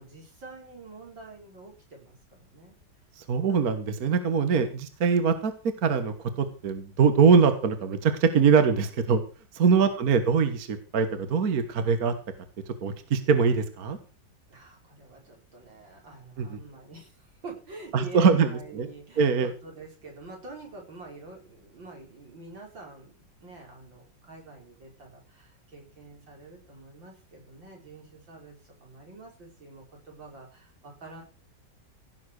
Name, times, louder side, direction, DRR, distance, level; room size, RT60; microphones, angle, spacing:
voice 1, 0.0-2.7 3.5-3.7 4.5-4.8 9.7-10.0 14.5-31.2, right 3 dB, 85° right, 0 dB, 5.8 m, -46 dB
voice 2, 3.2-5.5 5.8-9.2 9.5-12.1 12.7-14.0 16.4-16.6 17.9-18.9 19.2-19.5, right 5 dB, 55° right, 9 dB, 1.7 m, -23 dB
17.0 x 6.9 x 6.4 m, 0.37 s
omnidirectional pair, 2.0 m